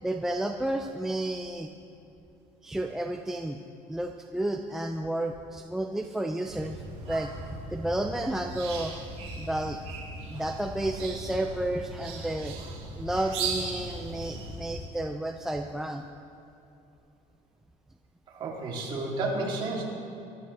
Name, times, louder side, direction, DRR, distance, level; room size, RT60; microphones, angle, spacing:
voice 1, 0.0-1.7 2.6-3.6 3.9-7.3 7.7-8.9 9.4-9.8 10.3-12.6 13.0-16.0, right 1 dB, 5° right, 3 dB, 0.5 m, -31 dB
sound 1, 6.4-14.8, right 3 dB, 55° right, 3.1 m, -38 dB
voice 2, 18.3-19.9, right 2 dB, 35° right, -4 dB, 3.4 m, -31 dB
23.5 x 12.5 x 3.5 m, 2.8 s
cardioid pair, 165°, 13 cm